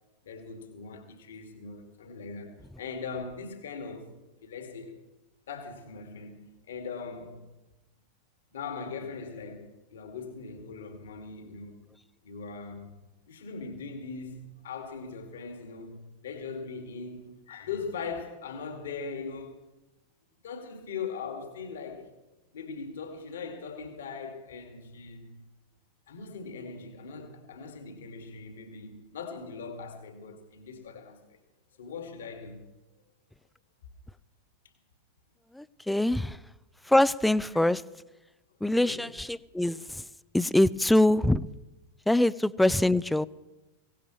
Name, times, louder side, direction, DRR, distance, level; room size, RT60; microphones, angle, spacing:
voice 1, 0.2-4.1 4.4-5.0 5.5-7.4 8.5-11.8 12.2-19.6 20.4-22.2 22.5-25.4 26.1-31.4 31.8-32.6 38.8-39.1, left 5 dB, 60° left, 2.2 m, -40 dB
voice 2, 35.6-36.4 36.9-37.8 38.6-39.8 40.3-41.5 42.1-43.3, left 1 dB, 5° left, 0.5 m, -24 dB
23.5 x 18.0 x 3.2 m
figure-of-eight pair, 90°, 0 cm